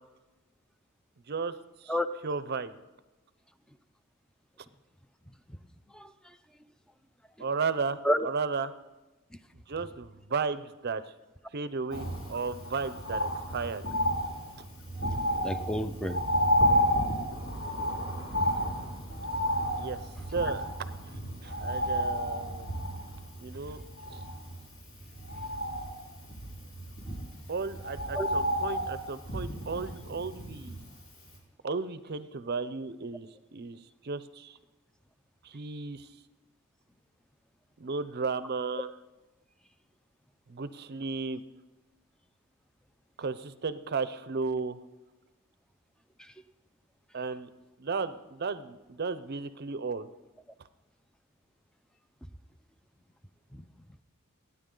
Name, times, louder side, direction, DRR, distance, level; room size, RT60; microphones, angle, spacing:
voice 1, 1.3-1.9 2.2-2.7 7.4-8.7 9.5-11.0 11.5-13.8 14.6-14.7 19.8-20.7 21.4-22.7 23.4-23.8 24.1-24.2 27.5-30.8 31.6-34.6 35.4-36.1 37.8-38.9 40.5-41.4 43.2-44.8 47.1-47.5 47.8-50.1, right 4 dB, 50° right, 13 dB, 0.6 m, -34 dB
voice 2, 5.9-6.4 8.0-8.3 15.4-16.2 27.0-27.1 28.1-28.3 46.2-46.3 53.5-53.7, equal, 5° left, 11 dB, 0.5 m, -31 dB
Bird, 11.9-31.0 31.3-31.4, equal, 65° left, 3.8 m, -31 dB
29.0 x 9.8 x 3.8 m, 1.1 s
head